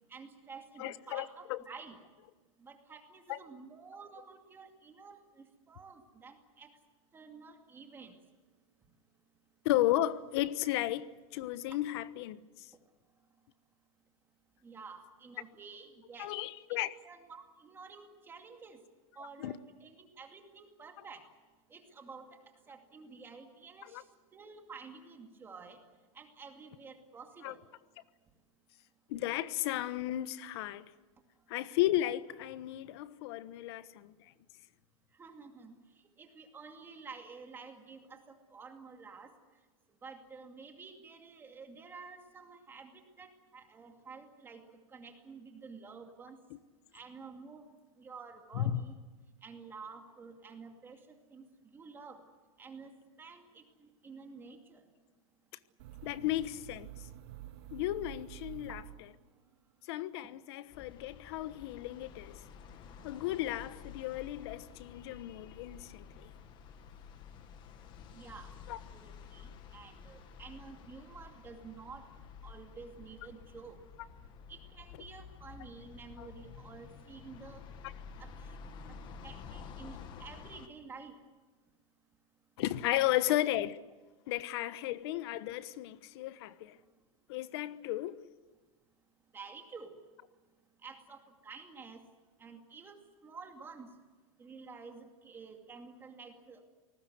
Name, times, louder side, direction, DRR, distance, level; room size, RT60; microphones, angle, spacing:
voice 1, 0.1-2.0 2.6-6.7 7.1-8.2 14.6-16.3 17.0-18.8 19.2-21.2 21.7-22.4 22.7-24.0 24.3-25.8 26.1-27.6 35.2-35.8 36.2-39.3 40.0-44.6 44.9-46.4 46.9-47.7 48.0-48.9 49.4-51.4 51.7-52.2 52.6-52.9 53.2-54.8 68.1-68.5 68.9-72.1 72.4-73.8 74.5-77.7 78.2-78.6 79.2-81.1 84.9-85.0 89.3-89.9 90.8-92.0 92.4-93.9 94.4-96.6, right 5 dB, 10° right, 2.3 m, -50 dB
voice 2, 0.8-1.6 3.3-3.4 9.6-12.7 16.2-16.9 19.4-19.6 23.9-24.0 27.4-27.5 29.1-30.9 31.5-34.1 48.5-48.8 56.0-56.9 57.7-58.8 59.9-62.4 63.0-66.3 68.7-68.8 76.2-76.3 82.6-83.7 84.3-86.8 87.3-88.2, left 14 dB, 50° left, 1.1 m, -34 dB
sound 1, 55.8-59.5, right 13 dB, 50° right, 2.1 m, -49 dB
sound 2, 60.7-80.7, left 6 dB, 25° left, 1.5 m, -51 dB
28.0 x 19.5 x 8.0 m
supercardioid pair, 170°, 18 cm